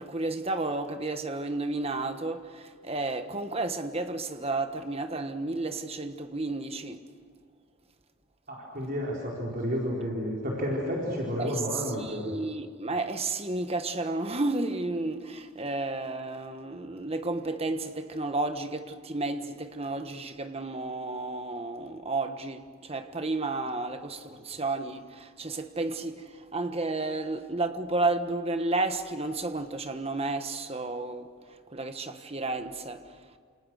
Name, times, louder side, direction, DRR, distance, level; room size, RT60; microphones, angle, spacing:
voice 1, 0.0-7.0 11.4-33.2, right 2 dB, 30° right, 1.4 m, -32 dB
voice 2, 8.5-12.3, equal, 45° right, 4.7 m, -31 dB
29.0 x 28.5 x 6.5 m
head